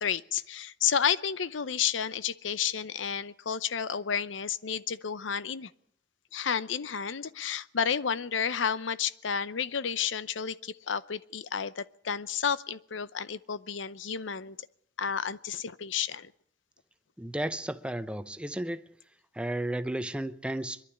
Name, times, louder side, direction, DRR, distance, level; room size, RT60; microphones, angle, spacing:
voice 1, 0.0-5.7 6.3-14.6 15.0-16.3, left 7 dB, 80° left, 0.7 m, -31 dB
voice 2, 17.2-18.8 19.3-20.8, right 1 dB, 5° right, 0.8 m, -33 dB
22.5 x 12.0 x 9.9 m
head